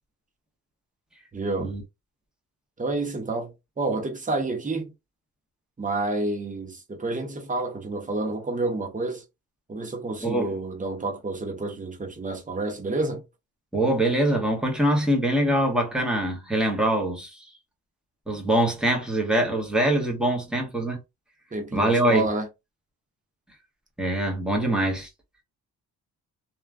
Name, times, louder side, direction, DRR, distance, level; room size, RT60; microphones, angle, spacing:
voice 1, 1.3-1.7 2.8-4.9 5.8-9.2 9.7-13.2 21.5-22.5, right 2 dB, 20° right, 1.0 m, -29 dB
voice 2, 13.7-17.5 18.3-21.0 21.7-22.2 24.0-25.1, right 1 dB, ahead, 1.1 m, -23 dB
3.0 x 2.4 x 2.3 m
cardioid pair, 85°, 36 cm